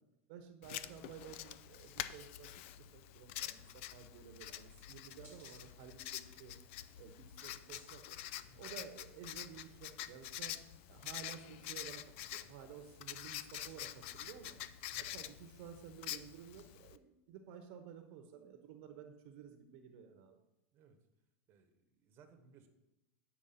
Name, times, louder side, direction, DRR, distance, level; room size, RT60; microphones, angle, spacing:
voice 1, 0.3-6.5 7.0-8.2 8.6-10.6 10.9-14.6 15.0-20.4, right 8 dB, 55° right, 6 dB, 0.9 m, -53 dB
Writing, 0.6-17.0, left 12 dB, 60° left, 0.4 m, -47 dB
sound 1, 3.6-16.8, left 1 dB, 25° left, 2.6 m, -71 dB
voice 2, 8.4-8.8 14.9-15.2 20.7-21.0 21.5-22.7, right 5 dB, 30° right, 6 dB, 1.0 m, -64 dB
9.0 x 4.5 x 5.7 m, 0.90 s
supercardioid pair, 150°, 7 cm